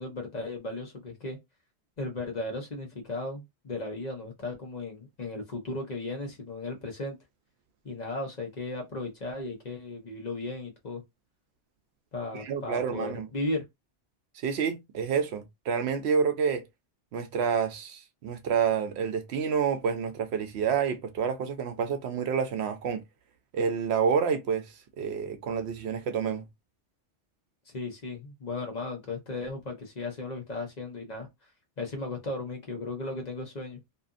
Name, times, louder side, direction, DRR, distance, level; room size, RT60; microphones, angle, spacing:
voice 1, 0.0-1.4 2.0-7.2 7.8-11.0 12.1-13.6 27.7-31.3 31.8-33.8, left 2 dB, 40° left, 0.9 m, -36 dB
voice 2, 12.3-13.3 14.4-16.7 17.1-23.0 23.5-26.4, right 6 dB, 75° right, 0.8 m, -28 dB
2.7 x 2.5 x 2.4 m
omnidirectional pair, 1.1 m